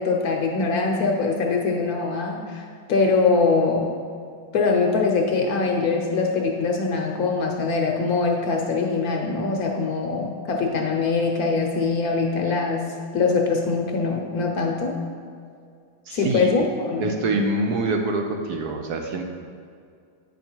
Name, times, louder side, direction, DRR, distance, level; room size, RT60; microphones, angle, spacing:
voice 1, 0.0-3.9 4.5-14.9 16.1-17.1, left 4 dB, 60° left, 2 dB, 1.2 m, -23 dB
voice 2, 16.1-16.5 17.0-19.2, right 2 dB, 70° right, 3 dB, 1.1 m, -25 dB
8.8 x 5.4 x 4.4 m, 2.2 s
omnidirectional pair, 2.0 m